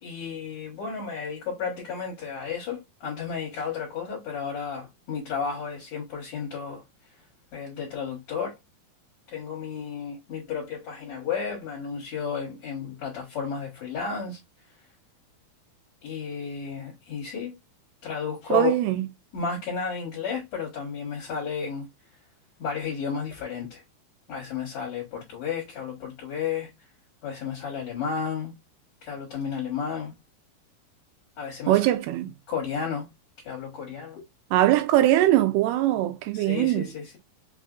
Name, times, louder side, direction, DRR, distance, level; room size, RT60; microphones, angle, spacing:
voice 1, 0.0-6.8 7.5-8.6 9.3-14.4 16.0-17.6 18.0-18.8 19.3-21.9 22.6-23.8 24.3-26.7 27.2-28.5 29.0-30.1 31.4-31.9 32.5-33.1 33.4-34.2 36.3-37.2, left 6 dB, 55° left, 2.4 m, -32 dB
voice 2, 18.5-19.0 31.7-32.3 34.5-36.9, right 14 dB, 85° right, 2.7 m, -21 dB
6.0 x 2.6 x 2.4 m
omnidirectional pair, 4.5 m